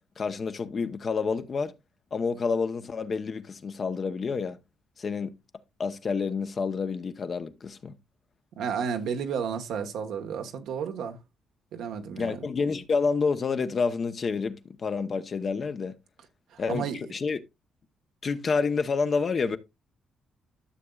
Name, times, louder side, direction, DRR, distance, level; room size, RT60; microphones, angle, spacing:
voice 1, 0.2-1.7 2.1-4.6 5.0-5.3 5.8-7.9 12.2-15.9 16.6-16.8 17.1-17.4 18.2-19.6, left 5 dB, 45° left, 0.9 m, -28 dB
voice 2, 8.6-11.2 11.7-12.5 16.5-17.1, right 7 dB, 80° right, 1.4 m, -32 dB
13.0 x 6.8 x 2.4 m
cardioid pair, 90°, 0 cm